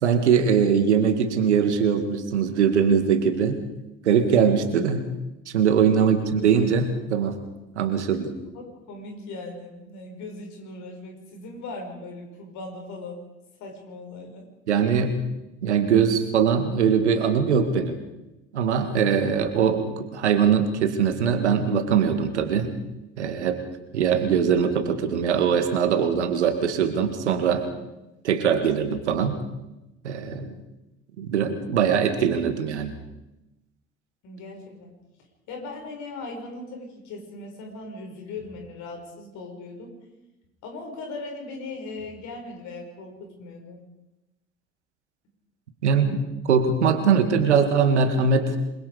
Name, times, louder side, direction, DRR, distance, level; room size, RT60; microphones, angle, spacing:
voice 1, 0.0-3.6 4.0-5.1 5.5-7.4 7.8-8.3 14.7-15.2 15.6-17.9 18.5-22.7 23.2-23.6 23.9-27.6 28.2-29.4 30.0-30.5 31.2-32.9 45.8-48.6, right 6 dB, 75° right, 8 dB, 2.3 m, -21 dB
voice 2, 5.8-6.1 8.5-13.2 13.6-14.5 34.2-34.9 35.5-39.9 40.6-43.8, left 2 dB, 55° left, 2 dB, 6.3 m, -39 dB
27.5 x 22.0 x 5.2 m, 0.96 s
figure-of-eight pair, 60°, 34 cm